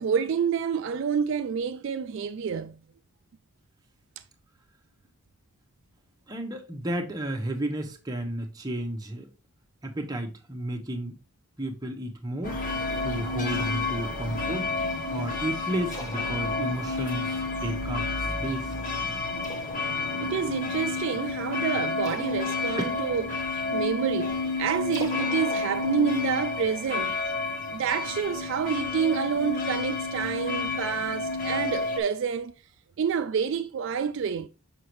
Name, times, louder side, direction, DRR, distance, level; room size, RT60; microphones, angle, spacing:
voice 1, 0.0-2.8 20.2-23.4 23.7-27.2 27.7-32.5 33.0-34.5, right 7 dB, 55° right, 0.3 m, -28 dB
voice 2, 6.3-9.3 9.8-11.2 11.6-12.6 13.0-14.7 15.1-18.7 22.8-23.0, right 1 dB, 15° right, 0.9 m, -32 dB
sound 1, 12.4-32.0, left 3 dB, 35° left, 1.0 m, -30 dB
sound 2, 13.5-26.9, equal, 15° left, 1.0 m, -46 dB
6.4 x 5.2 x 3.1 m
head